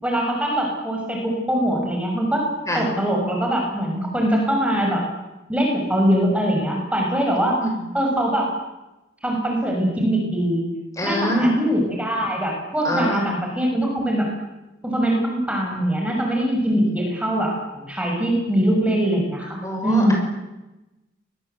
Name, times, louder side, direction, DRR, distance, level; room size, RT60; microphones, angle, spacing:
voice 1, 0.0-2.4 2.7-5.0 5.5-7.6 7.9-8.5 9.2-10.7 11.0-14.3 14.8-20.1, equal, 5° right, 0 dB, 6.4 m, -22 dB
voice 2, 11.0-11.6 12.8-13.2 16.7-17.0 19.6-20.1, equal, 15° left, 1 dB, 7.0 m, -24 dB
28.0 x 21.5 x 8.3 m, 1.0 s
head